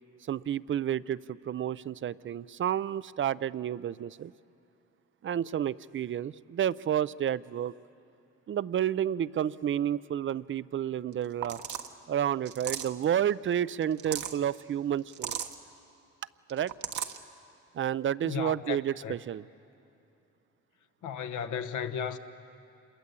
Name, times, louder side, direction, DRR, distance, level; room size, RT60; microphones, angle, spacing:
voice 1, 0.3-4.3 5.2-7.7 8.5-11.6 12.1-15.4 16.5-16.7 17.7-19.4, right 10 dB, 40° right, 0.5 m, -30 dB
sound 1, 11.1-11.2 11.4-11.9 12.4-13.0 13.8-14.4 15.1-15.5 16.5-17.2, right 9 dB, 75° right, 1.3 m, -36 dB
voice 2, 18.2-18.8 19.0-19.1 21.0-22.2, left 8 dB, 80° left, 1.2 m, -34 dB
27.5 x 22.0 x 8.3 m
cardioid pair, 90°, 30 cm